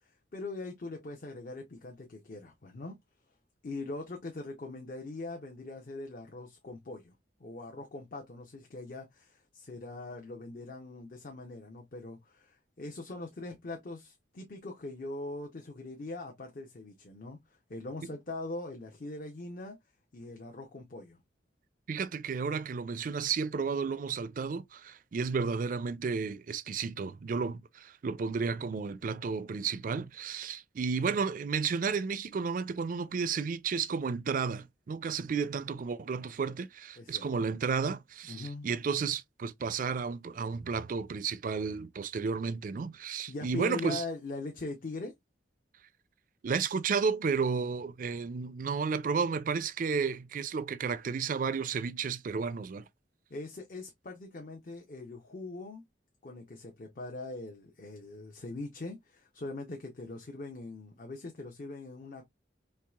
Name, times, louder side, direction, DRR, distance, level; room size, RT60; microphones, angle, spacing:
voice 1, 0.3-3.0 3.6-7.1 7.4-17.4 17.7-19.8 20.1-21.2 37.0-37.5 38.3-38.7 43.3-45.1 53.3-55.8 56.2-62.3, left 2 dB, 50° left, 0.7 m, -41 dB
voice 2, 21.9-44.0 46.4-52.8, right 5 dB, 45° right, 0.4 m, -32 dB
4.6 x 3.1 x 2.3 m
head